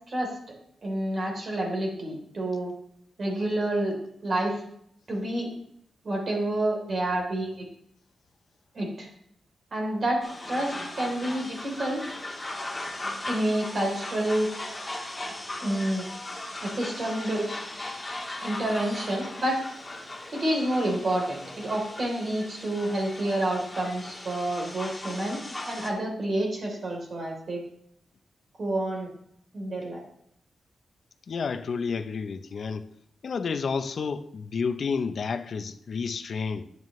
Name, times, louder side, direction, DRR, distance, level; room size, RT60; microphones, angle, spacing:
voice 1, 0.1-0.4 0.8-2.7 3.2-4.0 4.2-4.6 5.1-5.5 6.0-7.7 8.7-9.1 9.7-12.0 13.3-14.5 15.6-16.0 16.6-17.5 18.4-19.6 20.3-27.6 28.6-29.1 29.5-30.0, right 1 dB, 45° right, 3.4 m, -28 dB
sound 1, 10.2-25.9, left 2 dB, 15° left, 1.7 m, -38 dB
voice 2, 31.3-32.9 33.2-36.7, left 5 dB, 55° left, 0.6 m, -30 dB
11.0 x 9.3 x 3.1 m
wide cardioid pair, 125°, 0 cm